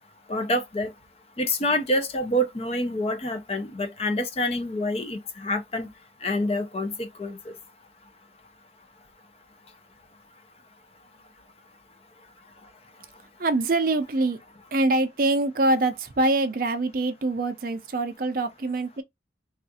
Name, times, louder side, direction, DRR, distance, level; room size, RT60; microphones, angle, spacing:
voice 1, 0.3-0.9 1.4-5.9 6.2-7.5, left 1 dB, 30° left, 0.4 m, -27 dB
voice 2, 13.4-14.4 14.7-19.0, right 2 dB, 50° right, 0.5 m, -24 dB
3.4 x 2.4 x 2.6 m
head